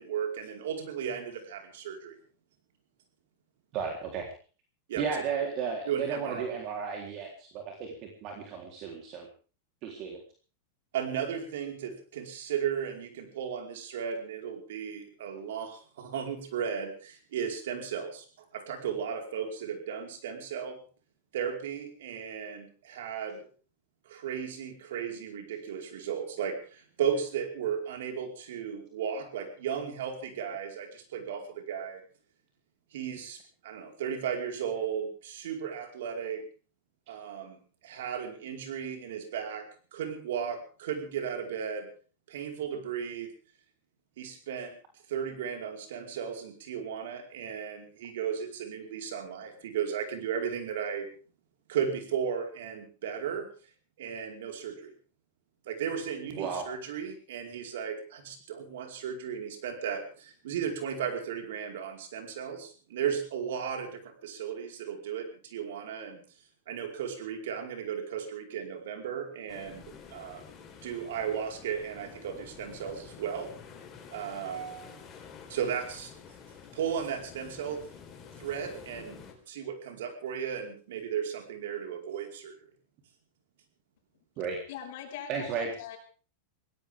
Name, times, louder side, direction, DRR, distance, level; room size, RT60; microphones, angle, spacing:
voice 1, 0.0-2.1 4.9-5.0 5.4-5.5 5.9-6.5 10.9-18.2 18.5-20.8 21.3-23.4 24.0-32.0 32.9-36.4 37.1-41.9 42.3-43.3 44.2-44.8 45.1-51.1 51.7-53.5 54.0-54.9 55.7-66.2 66.7-70.5 70.8-73.5 74.1-75.0 75.5-76.1 76.7-77.9 78.4-79.2 79.5-82.5, right 8 dB, 80° right, 5 dB, 4.8 m, -35 dB
voice 2, 3.7-4.3 5.0-8.0 8.2-9.3 9.8-10.2 56.4-56.6 84.4-84.6 85.3-85.7, right 6 dB, 40° right, 2 dB, 3.8 m, -34 dB
sound 1, 69.5-79.3, left 6 dB, 25° left, 4.3 m, -49 dB
voice 3, 84.7-86.0, left 9 dB, 65° left, 4 dB, 5.6 m, -41 dB
22.5 x 17.5 x 3.7 m, 0.38 s
supercardioid pair, 140°, 0 cm